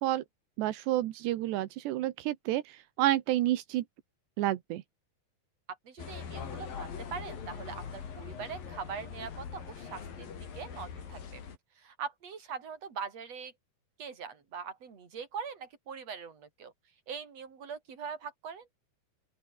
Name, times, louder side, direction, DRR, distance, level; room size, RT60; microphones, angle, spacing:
voice 1, 0.6-3.8 4.4-4.8, right 14 dB, 85° right, 3.4 m, -30 dB
voice 2, 5.7-11.4 11.8-13.5 14.0-16.7 17.1-18.7, right 6 dB, 40° right, 4.9 m, -42 dB
sound 1, 6.0-11.6, left 7 dB, 55° left, 5.2 m, -42 dB
open air
omnidirectional pair, 4.8 m